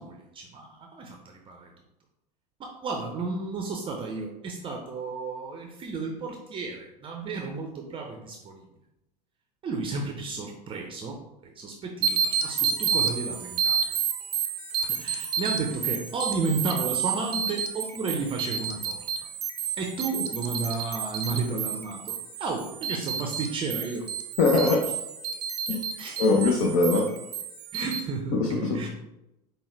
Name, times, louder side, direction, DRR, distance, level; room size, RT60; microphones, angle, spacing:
voice 1, 0.0-1.7 2.6-8.6 9.6-13.8 14.8-19.0 19.8-24.1 26.0-26.3 27.7-28.9, right 4 dB, 25° right, 2 dB, 0.5 m, -33 dB
sound 1, 12.0-28.0, right 7 dB, 75° right, 0.5 m, -30 dB
voice 2, 24.4-24.9 25.7-25.8 26.2-27.1 28.3-28.8, left 3 dB, 50° left, 1 dB, 0.7 m, -22 dB
5.2 x 2.2 x 3.3 m, 0.89 s
figure-of-eight pair, 80°, 21 cm